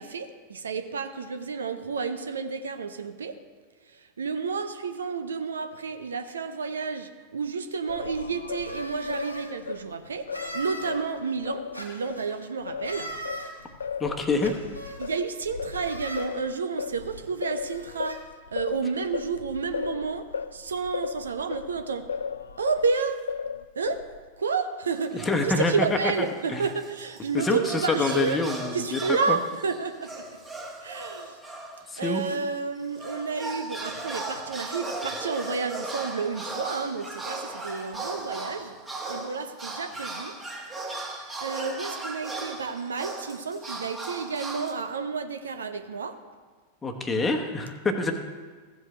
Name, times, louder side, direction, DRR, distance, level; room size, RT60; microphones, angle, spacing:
voice 1, 0.0-3.4 3.9-13.1 15.0-18.2 18.5-22.1 22.6-23.2 23.8-24.0 24.4-28.4 28.7-30.4 30.8-31.4 32.0-38.8 39.1-40.4 40.8-46.2, right 5 dB, 70° right, 8 dB, 0.7 m, -31 dB
Singing, 7.9-12.2 12.7-22.9 23.3-24.3, left 6 dB, 70° left, 0.3 m, -36 dB
sound 1, 8.6-9.5 10.3-10.9 11.7-12.3 12.8-13.5 14.4-15.0 15.7-16.3 17.1-17.2 17.6-18.2, right 1 dB, 90° left, 1.5 m, -38 dB
voice 2, 14.0-14.5 25.2-25.7 26.2-26.7 27.3-29.0 29.3-29.4 31.9-32.2 46.8-48.1, left 3 dB, 15° left, 4 dB, 1.1 m, -26 dB
sound 2, 24.9-25.8 26.3-32.3 32.8-44.7, right 2 dB, 15° right, 1.5 m, -37 dB
15.0 x 7.7 x 3.3 m, 1.5 s
figure-of-eight pair, 90°, 0 cm